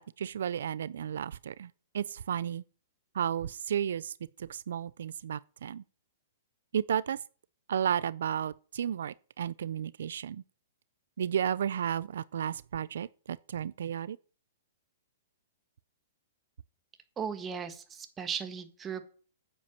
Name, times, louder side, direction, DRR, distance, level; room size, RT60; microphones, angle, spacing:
voice 1, 0.0-2.6 3.1-5.8 6.7-7.2 7.7-10.4 11.2-14.2, right 9 dB, 75° right, 0.4 m, -33 dB
voice 2, 17.2-19.0, right 6 dB, 15° right, 1.4 m, -37 dB
9.7 x 7.6 x 7.5 m
hypercardioid pair, 150°, 0 cm